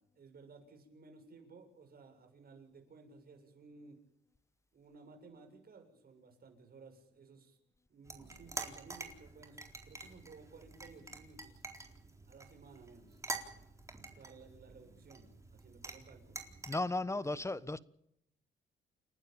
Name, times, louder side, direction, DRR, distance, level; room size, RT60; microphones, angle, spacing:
voice 1, 0.0-4.0 4.7-7.6 7.9-11.6 12.3-13.2 14.1-16.5 17.1-17.2, right 4 dB, 50° right, 7.4 m, -57 dB
sound 1, 8.0-16.8, right 2 dB, 15° right, 4.0 m, -47 dB
voice 2, 16.7-17.8, left 2 dB, 15° left, 1.2 m, -35 dB
29.5 x 12.0 x 9.0 m
cardioid pair, 90°, 20 cm